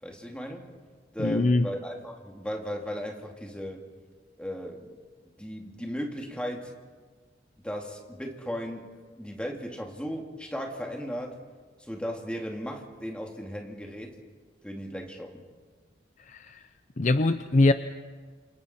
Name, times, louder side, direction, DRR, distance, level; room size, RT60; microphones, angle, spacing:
voice 1, 0.0-0.7 1.1-3.9 4.4-5.0 5.4-6.8 7.6-11.4 11.8-14.2 14.6-15.5, equal, 5° left, 1 dB, 2.2 m, -36 dB
voice 2, 1.2-1.7 16.3-16.6 17.0-17.7, left 2 dB, 40° left, 10 dB, 0.6 m, -22 dB
28.5 x 27.0 x 4.3 m, 1.5 s
head